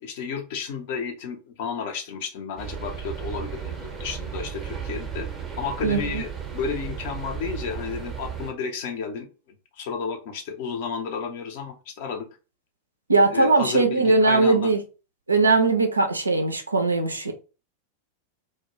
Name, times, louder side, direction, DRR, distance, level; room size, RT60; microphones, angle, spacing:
voice 1, 0.0-5.3 5.6-12.3 13.3-14.7, left 5 dB, 50° left, 0.6 m, -32 dB
sound 1, 2.6-8.5, right 7 dB, 15° right, 0.6 m, -34 dB
voice 2, 5.8-6.2 13.1-14.8 15.3-17.3, right 3 dB, 80° right, 0.3 m, -20 dB
2.1 x 2.1 x 2.9 m
figure-of-eight pair, 90°, 0 cm